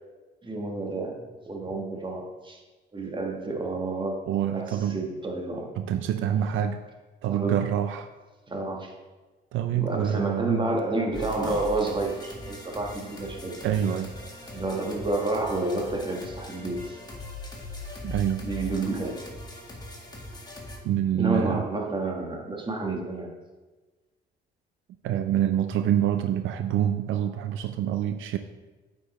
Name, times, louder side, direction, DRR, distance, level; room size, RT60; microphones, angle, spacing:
voice 1, 0.4-2.6 2.9-4.3 4.5-5.7 7.3-7.7 8.5-8.9 9.7-13.6 14.5-17.0 18.4-19.3 21.1-23.3, right 2 dB, 25° right, 1 dB, 1.4 m, -30 dB
voice 2, 4.3-5.0 5.8-6.8 7.2-8.1 9.5-10.7 13.6-14.1 18.0-18.5 20.8-21.7 25.0-28.4, right 10 dB, 80° right, 8 dB, 0.4 m, -26 dB
sound 1, 11.1-20.8, left 1 dB, 20° left, 1.8 m, -40 dB
8.3 x 5.1 x 4.2 m, 1.2 s
cardioid pair, 90°, 20 cm